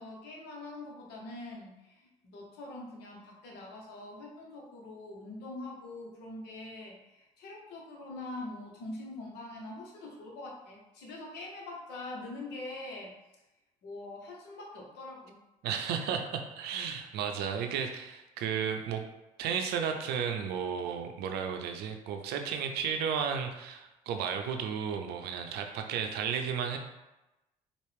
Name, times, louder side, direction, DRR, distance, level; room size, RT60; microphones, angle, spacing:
voice 1, 0.0-13.1 13.8-15.4, left 2 dB, 65° left, -1 dB, 1.1 m, -44 dB
voice 2, 15.6-19.0 19.4-26.8, right 7 dB, 65° right, 5 dB, 0.5 m, -33 dB
4.5 x 2.5 x 3.3 m, 0.97 s
hypercardioid pair, 50°, 18 cm